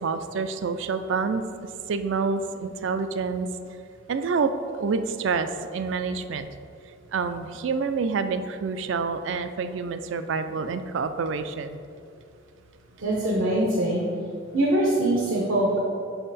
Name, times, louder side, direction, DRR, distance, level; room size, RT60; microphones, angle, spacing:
voice 1, 0.0-3.5 4.1-4.5 4.8-6.5 7.1-11.8, right 5 dB, 70° right, 10 dB, 0.4 m, -28 dB
voice 2, 13.0-14.0 14.5-15.8, right 1 dB, 90° right, -3 dB, 0.9 m, -23 dB
5.6 x 5.2 x 4.1 m, 2.4 s
head